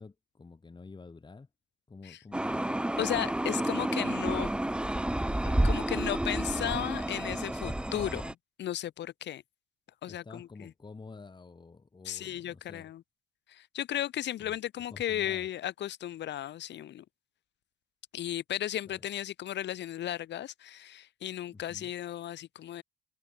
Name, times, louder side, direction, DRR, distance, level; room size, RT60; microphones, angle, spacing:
voice 1, 0.0-1.5 1.9-2.8 10.0-12.9 14.4-14.6 14.9-15.5 18.8-19.0 21.5-21.9, left 4 dB, 20° left, 4.2 m, -49 dB
sound 1, 2.3-8.3, right 1 dB, 5° right, 1.0 m, -30 dB
voice 2, 3.0-4.5 5.4-9.4 10.0-10.7 12.0-13.0 13.5-17.0 18.1-22.8, left 12 dB, 60° left, 1.0 m, -35 dB
cardioid pair, 110°, 21 cm